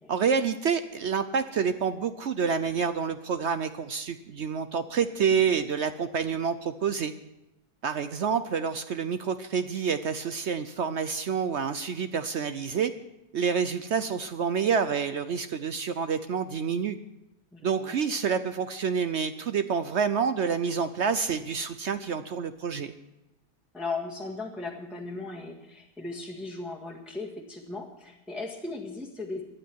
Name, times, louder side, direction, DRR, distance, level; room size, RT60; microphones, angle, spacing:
voice 1, 0.1-7.1 7.8-12.9 13.3-17.0 17.6-22.9, right 6 dB, 65° right, 11 dB, 0.7 m, -28 dB
voice 2, 17.5-18.0 23.7-29.4, left 3 dB, ahead, -2 dB, 1.6 m, -37 dB
20.0 x 12.0 x 4.6 m, 0.96 s
omnidirectional pair, 1.8 m